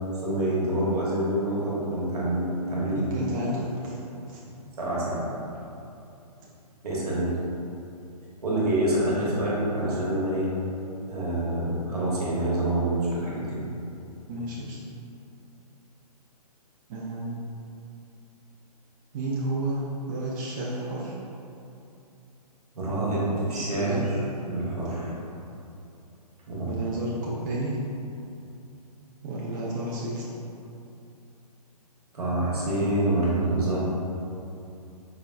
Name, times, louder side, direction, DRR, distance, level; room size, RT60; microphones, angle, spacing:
voice 1, 0.2-3.1 4.8-5.3 6.8-7.3 8.4-10.5 11.1-13.6 22.7-24.2 24.4-25.1 26.5-26.7 32.1-33.8, right 1 dB, 70° right, -6 dB, 1.1 m, -26 dB
voice 2, 2.9-4.0 4.3-4.4 14.3-14.8 16.9-17.4 19.1-19.8 20.1-21.1 23.5-24.0 26.7-27.8 29.2-30.3, right 1 dB, 30° right, -5 dB, 0.4 m, -31 dB
4.5 x 2.1 x 2.4 m, 2.7 s
figure-of-eight pair, 125°, 20 cm